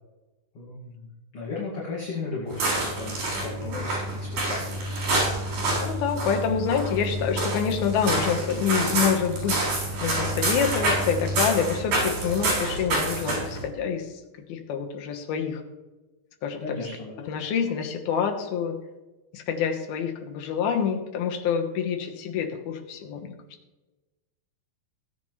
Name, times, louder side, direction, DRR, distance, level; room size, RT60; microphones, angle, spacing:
voice 1, 0.5-5.4 16.6-17.2, left 3 dB, 45° left, -5 dB, 2.6 m, -36 dB
sound 1, 2.5-13.6, right 2 dB, 85° right, 6.1 m, -27 dB
voice 2, 5.8-9.7 10.0-14.1 14.5-15.6 16.4-16.8 17.2-18.8 19.3-23.3, left 7 dB, 90° left, 4 dB, 3.2 m, -27 dB
17.0 x 9.7 x 3.2 m, 1.1 s
omnidirectional pair, 4.2 m